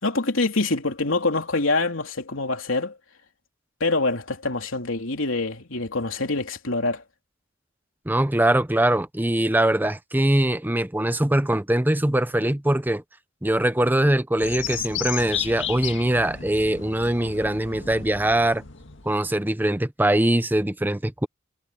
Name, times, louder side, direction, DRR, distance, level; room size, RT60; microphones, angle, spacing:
voice 1, 0.0-3.0 3.8-7.0, left 3 dB, 80° left, 3.3 m, -25 dB
voice 2, 8.1-13.0 13.4-18.6 19.0-21.3, right 1 dB, 10° right, 0.7 m, -22 dB
sound 1, 14.4-19.4, left 8 dB, 65° left, 1.9 m, -34 dB
head